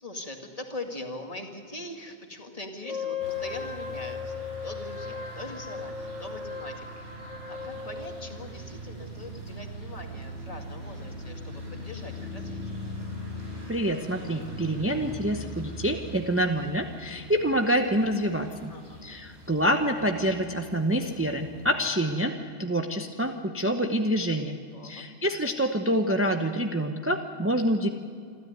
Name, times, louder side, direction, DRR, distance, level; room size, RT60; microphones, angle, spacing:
voice 1, 0.0-6.9 7.5-12.8 18.7-19.0 24.7-25.0, left 2 dB, 30° left, 3 dB, 2.2 m, -42 dB
Wind instrument woodwind instrument, 2.8-8.4, left 5 dB, 80° left, 2.1 m, -37 dB
sound 1, 3.2-21.7, equal, 65° right, 6.2 m, -41 dB
voice 2, 13.7-18.7 19.0-24.6 24.8-27.9, equal, 10° right, 4 dB, 0.9 m, -27 dB
26.5 x 13.0 x 9.4 m, 2.3 s
omnidirectional pair, 1.2 m